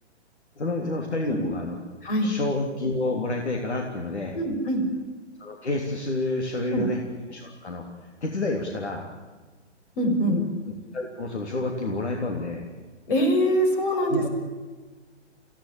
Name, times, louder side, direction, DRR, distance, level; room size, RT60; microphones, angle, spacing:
voice 1, 0.6-1.8 2.2-4.4 5.4-7.0 7.3-7.9 8.2-9.1 10.3-10.4 10.9-12.6 13.9-14.3, left 2 dB, 70° left, 1 dB, 3.5 m, -29 dB
voice 2, 4.3-4.8 6.7-6.8 10.0-10.4 13.1-14.3, equal, 50° left, 5 dB, 6.4 m, -23 dB
26.0 x 16.5 x 8.8 m, 1.3 s
figure-of-eight pair, 130°, 35 cm